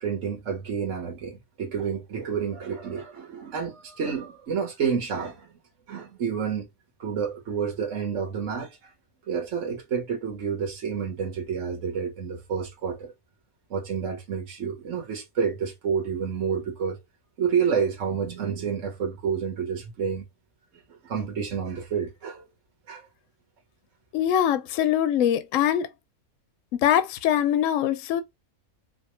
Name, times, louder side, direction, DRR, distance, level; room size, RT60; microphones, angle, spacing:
voice 1, 0.0-5.5 5.9-6.7 7.0-8.7 9.3-13.1 13.7-17.0 17.4-20.2 21.0-22.4 22.9-23.0, right 6 dB, 60° right, 1.4 m, -29 dB
voice 2, 24.1-25.9 26.7-28.2, left 10 dB, 70° left, 0.9 m, -23 dB
4.9 x 2.0 x 3.1 m
omnidirectional pair, 1.5 m